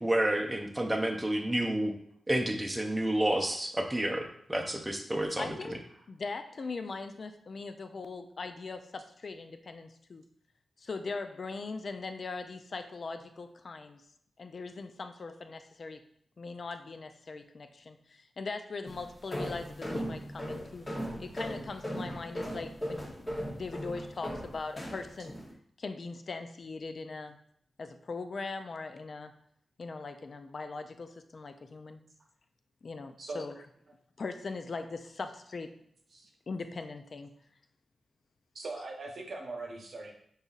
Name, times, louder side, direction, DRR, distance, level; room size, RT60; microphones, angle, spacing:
voice 1, 0.0-1.9 2.3-5.6, right 1 dB, 15° right, 3 dB, 0.6 m, -30 dB
voice 2, 5.4-5.8 6.1-10.2 10.8-14.0 14.4-16.0 16.4-20.9 21.2-25.4 25.8-27.4 27.8-29.3 29.8-32.0 32.8-33.5 34.2-35.7 36.5-37.3, left 4 dB, 50° left, 7 dB, 0.4 m, -40 dB
sound 1, 18.8-25.5, equal, 20° left, 0.9 m, -38 dB
voice 3, 33.2-33.5 36.1-36.3 38.5-40.1, right 2 dB, 65° right, 1 dB, 0.9 m, -40 dB
5.4 x 4.0 x 2.4 m, 0.67 s
wide cardioid pair, 110°, 0 cm